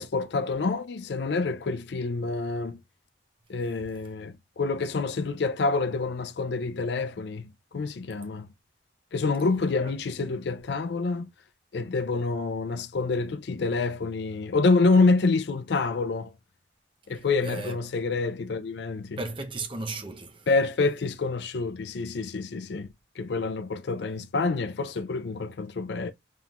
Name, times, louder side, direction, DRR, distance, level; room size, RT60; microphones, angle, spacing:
voice 1, 0.0-2.8 3.5-8.5 9.1-11.3 11.7-16.3 17.1-19.2 20.5-22.9 23.2-26.1, left 3 dB, 65° left, 0.4 m, -27 dB
voice 2, 17.1-17.8 19.2-20.5, right 2 dB, 25° right, 0.7 m, -36 dB
4.2 x 3.5 x 2.4 m
head